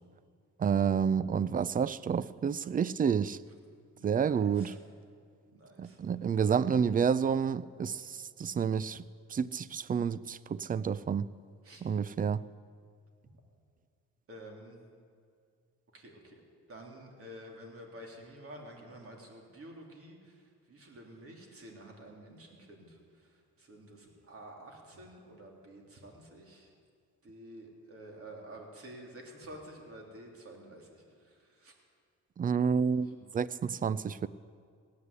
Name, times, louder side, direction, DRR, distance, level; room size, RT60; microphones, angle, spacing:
voice 1, 0.6-3.4 4.0-4.7 5.8-9.0 9.3-11.3 11.8-12.4 32.4-34.3, right 7 dB, 30° right, 0.4 m, -29 dB
voice 2, 4.0-4.8 5.5-6.3 11.6-11.8 14.3-14.8 15.9-16.4 16.7-26.7 27.2-31.7 33.0-33.1, right 1 dB, 50° right, 3.4 m, -50 dB
17.0 x 9.6 x 8.3 m
cardioid pair, 90°, 30 cm